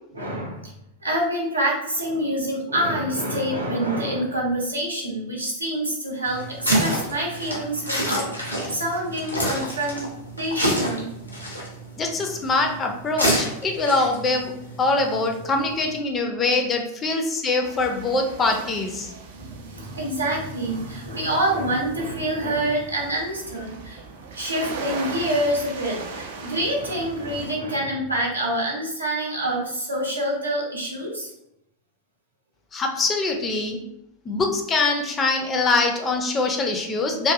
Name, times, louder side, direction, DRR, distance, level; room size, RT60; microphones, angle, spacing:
voice 1, 0.1-0.7 1.0-10.0 10.4-11.1 19.4-24.0 24.4-31.3, right 1 dB, 80° right, -3 dB, 0.7 m, -26 dB
sound 1, 6.2-16.0, equal, 85° left, 0.7 m, -28 dB
voice 2, 12.0-14.5 14.8-19.1 32.7-33.8 34.3-37.3, left 3 dB, 20° left, 3 dB, 0.4 m, -23 dB
sound 2, 17.6-27.5, right 4 dB, 55° right, 0.4 m, -39 dB
2.5 x 2.3 x 2.4 m, 0.80 s
figure-of-eight pair, 90°, 0 cm